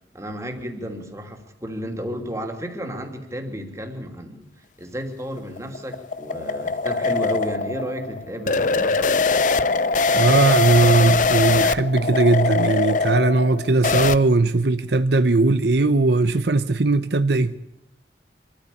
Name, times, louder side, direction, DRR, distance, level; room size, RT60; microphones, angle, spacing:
voice 1, 0.1-4.5 4.8-9.2, equal, 15° right, 2.9 m, -32 dB
sound 1, 5.2-14.2, left 4 dB, 45° left, 0.7 m, -22 dB
voice 2, 10.1-17.6, right 3 dB, 70° right, 0.8 m, -19 dB
25.5 x 14.0 x 8.5 m
head